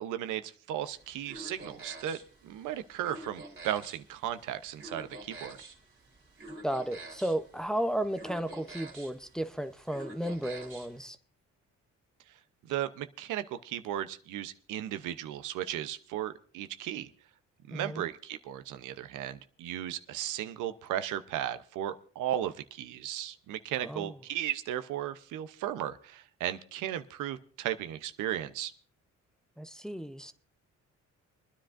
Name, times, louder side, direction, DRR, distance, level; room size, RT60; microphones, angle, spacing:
voice 1, 0.0-2.2 2.4-5.6 12.7-17.1 17.7-28.7, right 11 dB, 90° right, 0.7 m, -35 dB
sound 1, 0.8-11.1, right 2 dB, 40° right, 2.7 m, -48 dB
voice 2, 6.6-11.2 17.7-18.0 23.8-24.1 29.6-30.3, right 1 dB, ahead, 0.7 m, -34 dB
27.5 x 10.0 x 2.5 m
cardioid pair, 90°, 30 cm